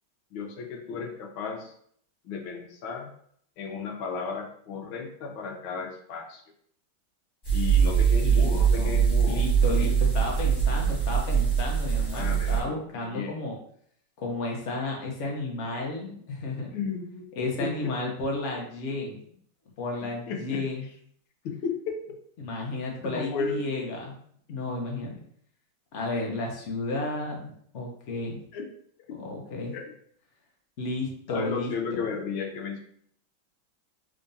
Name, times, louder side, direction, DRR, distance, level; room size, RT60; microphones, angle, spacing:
voice 1, 0.3-1.7 2.2-3.1 3.6-6.4 7.5-9.5 9.8-10.0 12.1-13.4 16.7-17.3 17.6-17.9 20.0-20.6 21.4-22.0 23.0-23.6 28.5-28.7 29.1-29.2 29.7-29.8 31.3-32.8, left 5 dB, 85° left, 3 dB, 1.5 m, -34 dB
sound 1, 7.4-12.6, right 7 dB, 25° left, 1.3 m, -23 dB
voice 2, 8.2-13.6 14.2-16.7 17.4-19.2 19.8-20.9 22.4-24.2 24.5-25.2 25.9-28.4 29.2-29.7 30.8-32.1, left 2 dB, 55° left, -1 dB, 0.8 m, -32 dB
3.7 x 3.4 x 2.6 m, 0.64 s
omnidirectional pair, 2.2 m